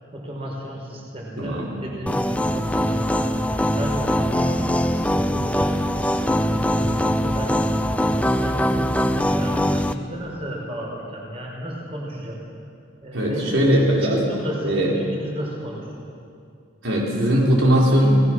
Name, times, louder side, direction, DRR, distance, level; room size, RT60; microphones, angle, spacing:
voice 1, 0.1-7.6 8.1-12.4 13.0-13.6 14.0-15.9, equal, 30° right, -2 dB, 5.1 m, -33 dB
voice 2, 1.4-1.7 13.1-14.2 14.6-15.0 16.8-18.2, equal, 85° right, -3 dB, 4.7 m, -19 dB
sound 1, 2.1-9.9, equal, 5° left, 0.6 m, -22 dB
28.5 x 19.0 x 6.4 m, 2.4 s
head